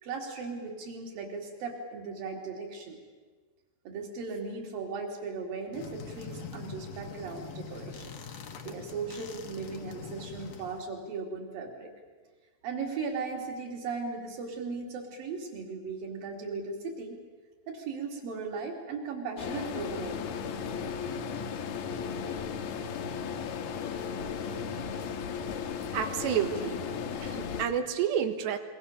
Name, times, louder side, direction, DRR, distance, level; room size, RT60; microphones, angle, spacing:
voice 1, 0.0-3.0 3.8-8.2 8.6-11.9 12.6-17.2 17.7-20.2, right 4 dB, 55° right, 2 dB, 4.8 m, -37 dB
sound 1, 5.7-10.9, left 5 dB, 55° left, 2.1 m, -43 dB
sound 2, 19.4-27.7, left 6 dB, 70° left, 3.3 m, -35 dB
voice 2, 25.9-26.8 27.2-28.6, right 8 dB, 85° right, 8 dB, 3.7 m, -29 dB
27.0 x 23.0 x 7.0 m, 1.4 s
omnidirectional pair, 4.8 m